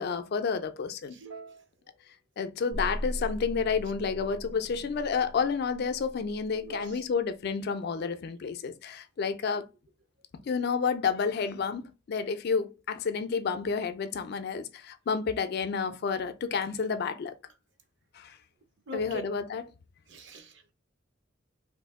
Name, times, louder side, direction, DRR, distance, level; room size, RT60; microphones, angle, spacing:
voice 1, 0.0-1.2 2.4-9.7 10.5-17.3 18.1-18.4 18.9-19.6, left 5 dB, 55° left, 0.4 m, -30 dB
voice 2, 1.1-1.6 6.6-7.0 18.9-19.2 20.1-20.7, right 2 dB, 65° right, 0.7 m, -42 dB
sound 1, 2.7-7.0, equal, 10° right, 0.4 m, -40 dB
2.7 x 2.5 x 3.5 m
head